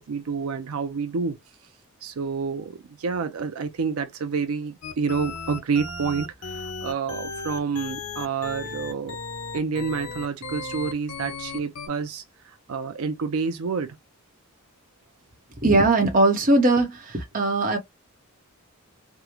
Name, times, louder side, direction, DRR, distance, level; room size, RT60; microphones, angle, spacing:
voice 1, 0.0-1.4 2.0-9.2 9.5-14.0, right 5 dB, 80° right, 0.5 m, -29 dB
sound 1, 4.8-11.9, left 3 dB, 90° left, 0.8 m, -35 dB
voice 2, 15.6-16.9 17.3-17.8, right 2 dB, 40° right, 0.8 m, -19 dB
3.5 x 2.0 x 2.9 m
head